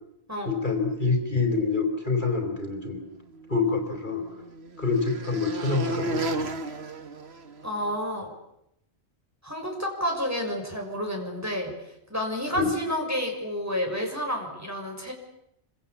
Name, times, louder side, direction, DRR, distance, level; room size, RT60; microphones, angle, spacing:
voice 1, 0.4-3.0 3.5-4.2 4.8-6.6 12.6-12.8, left 4 dB, 45° left, 4 dB, 4.8 m, -26 dB
sound 1, 3.3-8.0, right 2 dB, 65° right, 1.9 m, -34 dB
voice 2, 7.6-8.3 9.4-11.7 12.1-15.1, equal, 15° right, 1 dB, 6.3 m, -30 dB
27.5 x 25.5 x 8.5 m, 0.79 s
omnidirectional pair, 1.1 m